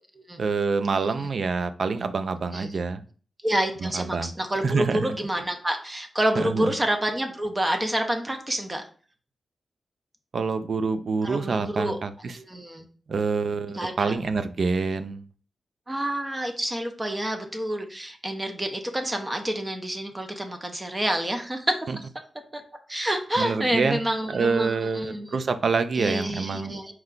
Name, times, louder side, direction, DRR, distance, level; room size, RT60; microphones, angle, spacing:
voice 1, 0.4-3.0 3.8-4.3 4.6-5.1 6.4-6.7 10.3-12.3 13.1-15.2 21.9-22.0 23.4-24.0 24.3-26.7, right 4 dB, 60° right, 10 dB, 0.4 m, -26 dB
voice 2, 3.4-8.8 11.2-12.0 12.3-12.8 13.7-14.2 15.9-22.1 22.5-22.6 22.9-25.3 25.9-26.9, right 1 dB, 20° right, 5 dB, 0.6 m, -28 dB
4.5 x 2.2 x 3.7 m, 0.41 s
wide cardioid pair, 115°, 0 cm